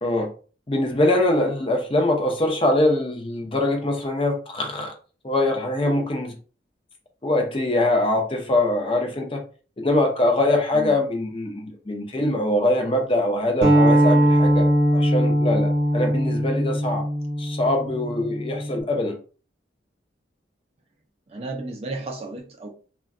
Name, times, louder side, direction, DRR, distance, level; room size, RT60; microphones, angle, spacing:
voice 1, 0.7-4.9 5.2-6.3 7.2-9.4 9.8-14.7 14.9-17.0 17.4-19.2, left 1 dB, 30° left, 0.6 m, -23 dB
sound 1, 13.6-18.8, equal, 55° right, 0.8 m, -20 dB
voice 2, 21.3-22.7, right 2 dB, 35° right, 0.4 m, -33 dB
2.2 x 2.2 x 3.5 m
head